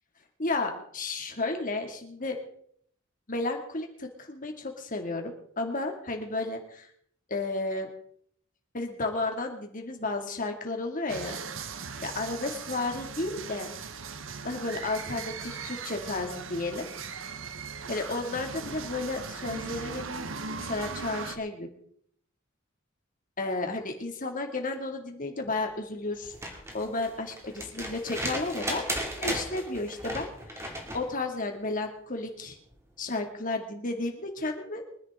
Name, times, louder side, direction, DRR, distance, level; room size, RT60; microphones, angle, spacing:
voice 1, 0.4-2.4 3.3-6.9 7.3-7.9 8.7-11.3 12.0-13.7 14.4-16.9 17.9-20.1 20.6-21.7 23.4-32.6 33.0-34.8, left 2 dB, 45° left, 4 dB, 2.5 m, -33 dB
sound 1, 11.1-21.4, right 5 dB, 75° right, 1.1 m, -39 dB
sound 2, 26.2-31.1 32.7-32.8, right 1 dB, 15° right, 2.7 m, -35 dB
24.0 x 10.5 x 3.8 m, 0.65 s
head